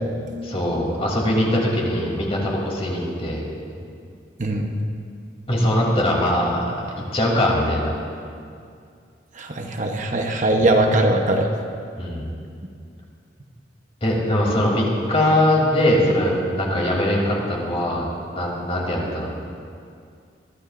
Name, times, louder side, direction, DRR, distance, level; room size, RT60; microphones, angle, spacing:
voice 1, 0.4-3.4 3.7-3.8 5.5-7.9 12.0-12.3 14.0-18.0 18.3-19.3, left 1 dB, 35° left, -3 dB, 3.1 m, -21 dB
voice 2, 4.4-4.7 9.4-11.5, right 1 dB, 45° right, 2 dB, 1.0 m, -20 dB
22.5 x 13.5 x 2.6 m, 2.3 s
head